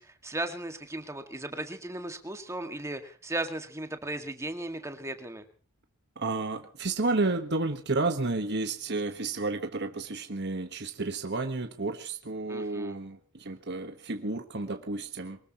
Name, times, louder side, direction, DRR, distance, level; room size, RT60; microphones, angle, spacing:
voice 1, 0.0-5.4 12.5-13.0, right 1 dB, 15° right, 6 dB, 1.9 m, -36 dB
voice 2, 6.2-15.4, right 3 dB, 50° right, 6 dB, 1.3 m, -31 dB
23.5 x 19.5 x 3.0 m, 0.40 s
head